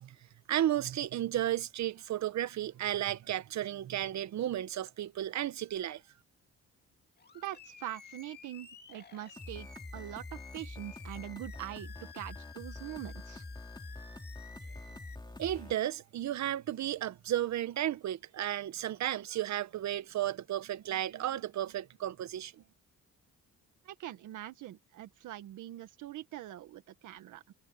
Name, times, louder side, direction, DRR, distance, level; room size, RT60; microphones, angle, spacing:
voice 1, 0.5-6.0 15.4-22.5, right 12 dB, 65° right, 1.1 m, -33 dB
Animal, 7.2-15.1, left 5 dB, 35° left, 2.4 m, -53 dB
voice 2, 7.3-9.7 9.9-13.4 23.8-27.5, right 13 dB, 85° right, 1.7 m, -43 dB
sound 1, 9.4-15.7, left 2 dB, 15° left, 3.2 m, -46 dB
cardioid pair, 90°, 30 cm